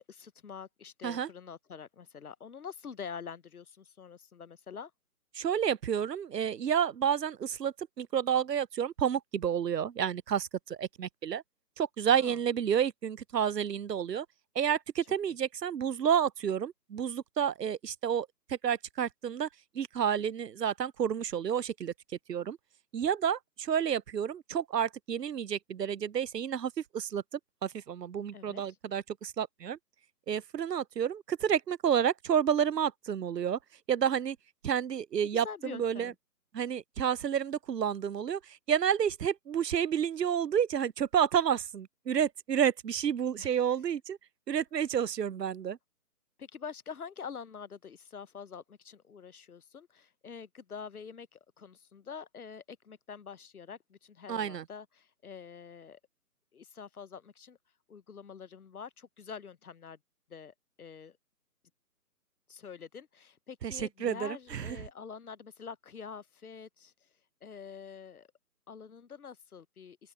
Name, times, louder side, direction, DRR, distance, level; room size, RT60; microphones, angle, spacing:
voice 1, 0.0-4.9 12.1-12.4 15.3-15.4 28.3-28.6 35.2-36.1 43.4-43.6 46.4-56.0 56.5-57.6 57.9-60.0 60.3-61.2 62.5-66.9 67.4-68.3 68.7-70.1, left 6 dB, 65° left, 0.9 m, -46 dB
voice 2, 5.4-11.4 11.8-14.3 14.6-19.5 19.7-21.9 22.3-22.6 22.9-27.2 27.6-29.8 30.3-33.6 33.9-34.4 34.6-36.1 36.5-38.4 38.7-44.2 44.5-45.8 54.3-54.6 63.6-64.8, right 8 dB, 85° right, 0.6 m, -30 dB
open air
figure-of-eight pair, 145°, 47 cm